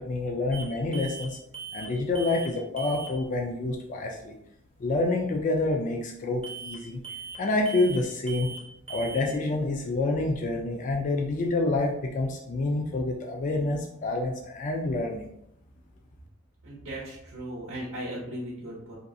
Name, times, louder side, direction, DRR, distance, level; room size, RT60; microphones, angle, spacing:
voice 1, 0.0-1.4 1.7-4.3 4.8-7.0 7.4-8.5 8.9-15.3, left 2 dB, 40° left, 1 dB, 0.3 m, -28 dB
sound 1, 0.5-0.7 0.9-1.3 1.5-2.5 2.8-3.1 6.4-6.8 7.0-7.4 7.7-8.0 8.3-8.6 8.9-9.2, right 5 dB, 30° right, 0.5 m, -39 dB
voice 2, 16.6-18.9, right 1 dB, 85° right, -5 dB, 0.7 m, -37 dB
2.6 x 2.3 x 2.5 m, 0.76 s
head